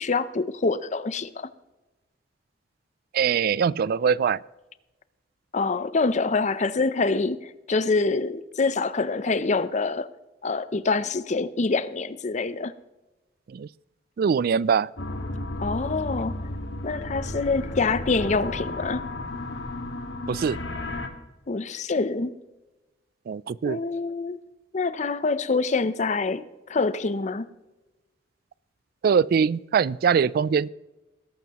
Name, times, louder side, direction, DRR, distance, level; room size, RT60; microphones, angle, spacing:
voice 1, 0.0-1.5 5.5-10.1 10.4-12.7 15.6-16.4 16.8-19.0 21.5-22.4 23.6-24.4 24.7-27.5, left 3 dB, 40° left, 0.6 m, -26 dB
voice 2, 3.1-4.4 13.5-13.7 14.2-14.9 20.3-20.6 23.3-23.8 29.0-30.7, right 6 dB, 55° right, 0.3 m, -22 dB
sound 1, 15.0-21.1, left 1 dB, 70° left, 1.7 m, -33 dB
21.0 x 11.5 x 3.0 m
head